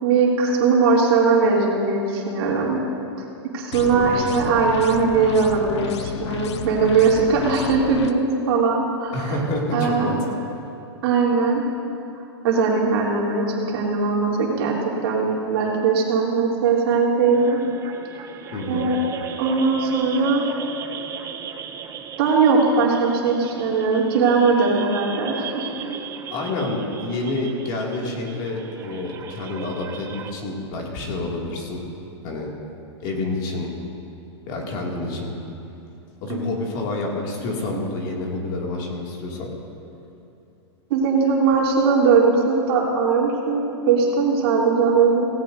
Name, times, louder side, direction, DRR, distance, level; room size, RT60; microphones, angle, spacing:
voice 1, 0.0-2.8 3.5-9.4 9.7-10.2 11.0-11.6 12.4-17.6 18.7-19.0 19.4-20.4 22.2-26.1 36.3-36.5 40.9-45.3, right 4 dB, 60° right, -3 dB, 2.8 m, -20 dB
sound 1, 3.7-8.1, left 7 dB, 75° left, 0.7 m, -32 dB
voice 2, 9.1-10.2 18.5-18.9 26.3-31.8 32.2-32.5 33.0-33.7 34.5-35.3 36.2-39.5, left 2 dB, 45° left, -1 dB, 2.4 m, -28 dB
sound 2, 17.3-30.3, right 8 dB, 20° right, 0.6 m, -37 dB
17.0 x 16.0 x 2.7 m, 2.8 s
hypercardioid pair, 150°, 15 cm